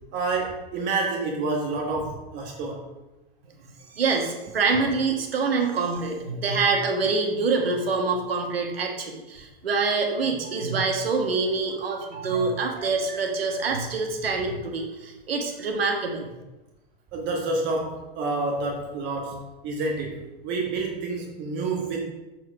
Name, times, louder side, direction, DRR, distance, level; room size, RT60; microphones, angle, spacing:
voice 1, 0.1-2.9 11.7-13.2 17.1-22.1, right 3 dB, 40° right, 0 dB, 1.4 m, -29 dB
voice 2, 3.9-16.3, right 4 dB, 85° right, 2 dB, 1.4 m, -25 dB
7.4 x 4.6 x 4.9 m, 1.0 s
hypercardioid pair, 115°, 29 cm